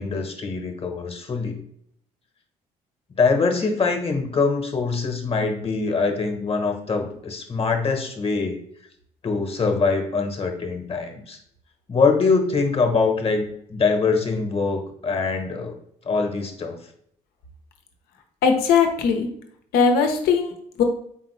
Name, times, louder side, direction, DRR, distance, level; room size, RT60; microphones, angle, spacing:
voice 1, 0.0-1.6 3.2-8.6 9.2-11.4 11.9-13.4 13.7-15.7 16.0-16.8, left 4 dB, 35° left, 5 dB, 1.1 m, -23 dB
voice 2, 18.4-19.3 19.7-20.8, left 6 dB, 80° left, 4 dB, 0.8 m, -19 dB
4.2 x 3.8 x 3.1 m, 0.69 s
supercardioid pair, 65°, 16 cm